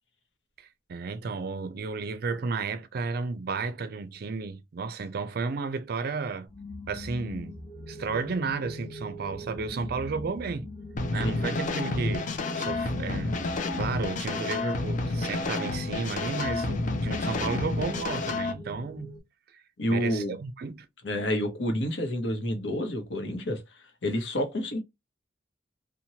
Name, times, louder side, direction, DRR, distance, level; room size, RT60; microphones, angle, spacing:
voice 1, 0.6-6.5 6.9-7.6 7.9-10.7 11.1-13.3 13.7-19.1 19.5-19.6 19.9-20.9, right 4 dB, 60° right, 0.4 m, -33 dB
sound 1, 6.5-19.2, left 2 dB, 5° left, 0.9 m, -41 dB
sound 2, 11.0-18.5, left 2 dB, 45° left, 0.4 m, -30 dB
voice 2, 11.2-11.5 19.8-20.4 21.0-23.6 24.0-24.8, equal, 75° left, 0.8 m, -29 dB
2.9 x 2.2 x 2.7 m
head